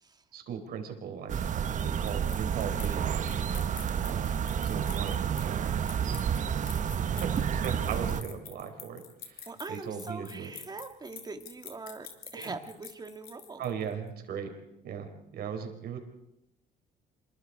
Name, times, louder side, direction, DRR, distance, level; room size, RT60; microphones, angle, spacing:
voice 1, 0.3-3.5 4.0-4.2 4.6-5.7 6.1-6.4 7.2-10.5 12.3-12.5 13.6-14.5 14.8-16.0, right 7 dB, 65° right, 5 dB, 4.6 m, -38 dB
sound 1, 1.3-13.9, left 8 dB, 60° left, 3.1 m, -47 dB
sound 2, 1.3-8.2, right 8 dB, 50° right, 1.3 m, -30 dB
voice 2, 6.1-6.6 9.5-12.1 12.3-13.6, right 3 dB, 25° right, 6 dB, 2.2 m, -42 dB
27.0 x 22.5 x 4.9 m, 0.85 s
cardioid pair, 110°, 17 cm